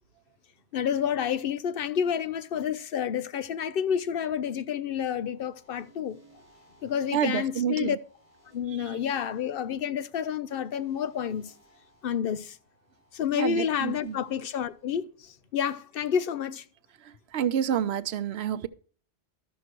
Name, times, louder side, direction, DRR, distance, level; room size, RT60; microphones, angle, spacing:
voice 1, 0.7-6.2 6.8-8.0 8.5-11.5 12.0-12.6 13.1-16.7, left 8 dB, 65° left, 0.7 m, -29 dB
sound 1, 5.1-14.9, right 2 dB, 45° left, 5.7 m, -60 dB
voice 2, 7.1-8.0 8.7-9.0 13.4-14.2 17.0-18.7, right 9 dB, 80° right, 0.9 m, -29 dB
13.0 x 6.3 x 4.5 m
omnidirectional pair, 1.1 m